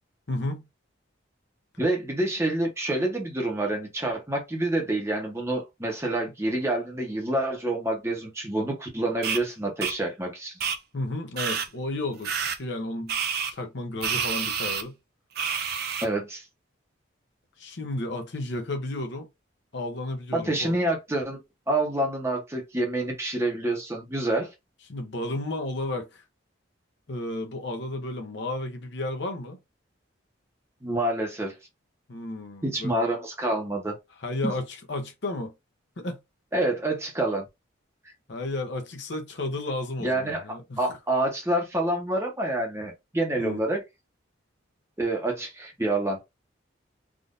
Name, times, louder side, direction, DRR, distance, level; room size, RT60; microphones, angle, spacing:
voice 1, 0.3-0.6 10.9-13.2 13.5-14.9 17.6-19.3 19.7-20.7 24.9-26.2 27.1-29.6 32.1-32.9 34.2-35.5 36.0-36.2 38.3-40.8 43.4-43.6, left 2 dB, 60° left, 0.8 m, -32 dB
voice 2, 1.8-10.6 16.0-16.4 20.3-21.4 21.7-24.5 30.8-31.6 32.6-34.0 34.4-34.5 36.5-37.4 40.0-40.5 40.8-43.8 45.0-46.2, right 1 dB, 15° right, 0.9 m, -27 dB
sound 1, 9.2-9.4 9.8-9.9 10.6-10.8 11.4-11.7 12.2-12.6 13.1-13.5 14.0-14.8 15.4-16.1, right 7 dB, 50° right, 0.4 m, -28 dB
3.6 x 2.5 x 2.5 m
head